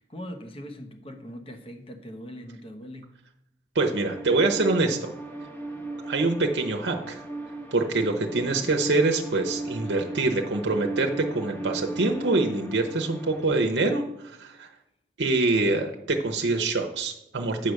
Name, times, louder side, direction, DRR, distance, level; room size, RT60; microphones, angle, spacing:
voice 1, 0.0-3.1, equal, 35° left, 5 dB, 1.0 m, -41 dB
voice 2, 3.7-5.1 6.0-7.2 7.7-14.7 15.2-17.7, right 3 dB, 75° right, 4 dB, 0.8 m, -25 dB
sound 1, 3.8-13.5, right 2 dB, 10° left, 1.2 m, -37 dB
9.0 x 4.7 x 6.5 m, 0.86 s
head